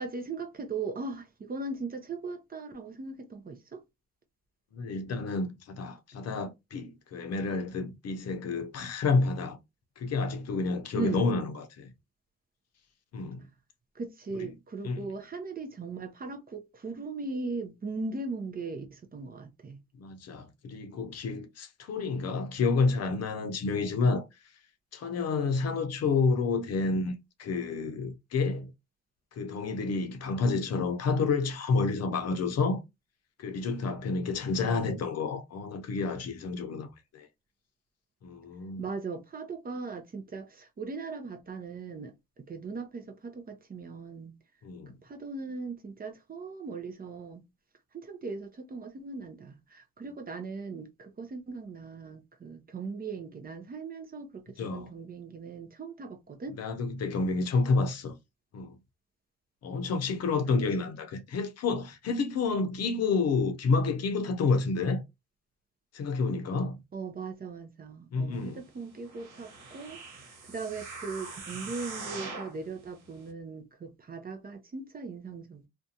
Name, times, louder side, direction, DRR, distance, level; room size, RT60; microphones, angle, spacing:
voice 1, 0.0-3.8 10.9-11.2 14.0-19.8 34.6-35.0 38.8-42.1 42.5-44.4 45.0-47.4 47.9-56.5 66.9-70.0 70.5-75.7, right 4 dB, 30° right, 0.6 m, -39 dB
voice 2, 4.7-9.6 10.0-11.9 13.1-13.5 14.3-14.6 14.8-15.1 20.0-24.2 24.9-28.7 29.3-32.8 33.4-37.3 38.2-38.9 44.6-44.9 54.6-54.9 56.5-58.2 58.5-58.8 59.6-65.0 65.9-66.8 68.1-68.6, left 4 dB, 55° left, 0.6 m, -29 dB
sound 1, 69.0-72.6 73.2-73.3, right 3 dB, 70° right, 1.2 m, -42 dB
2.5 x 2.2 x 2.7 m
cardioid pair, 90°, 30 cm